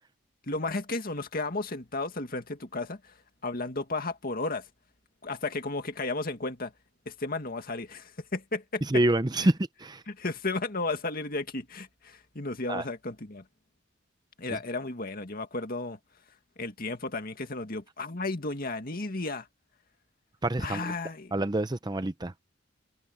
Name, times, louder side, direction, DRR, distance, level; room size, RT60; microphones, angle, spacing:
voice 1, 0.5-3.0 3.4-4.6 5.2-6.7 7.1-8.8 9.4-9.5 10.1-13.4 14.4-16.0 16.6-19.5 20.6-21.3, left 3 dB, 50° left, 2.1 m, -33 dB
voice 2, 8.9-10.0 12.7-12.8 20.4-20.9 21.3-22.3, right 1 dB, 20° right, 0.7 m, -27 dB
head